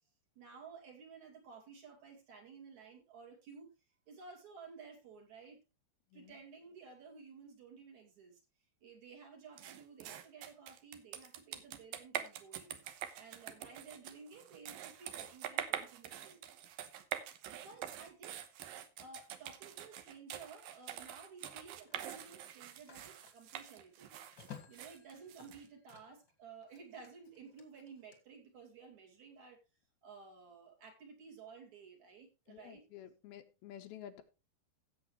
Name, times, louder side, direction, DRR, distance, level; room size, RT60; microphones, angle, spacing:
voice 1, 0.3-3.7 4.1-5.6 6.1-8.4 8.8-16.7 17.4-18.4 19.0-29.6 30.0-32.8, right 5 dB, 50° right, 1 dB, 3.4 m, -55 dB
sound 1, 9.6-25.9, right 10 dB, 70° right, 2.5 m, -45 dB
Telephone, 19.3-19.5 21.5-26.3 26.6-28.2, left 8 dB, 40° left, 1.8 m, -57 dB
voice 2, 32.5-34.2, left 10 dB, 75° left, 6 dB, 2.8 m, -51 dB
16.0 x 7.7 x 3.1 m, 0.28 s
omnidirectional pair, 4.6 m